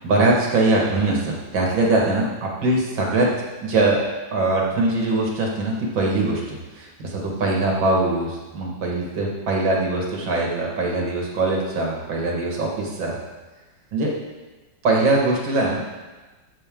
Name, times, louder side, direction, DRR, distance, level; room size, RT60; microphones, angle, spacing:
voice 1, 0.0-3.3 3.6-4.0 4.3-13.1 13.9-14.1 14.8-15.8, right 2 dB, 90° right, -2 dB, 2.8 m, -22 dB
16.0 x 7.2 x 3.8 m, 1.2 s
omnidirectional pair, 2.0 m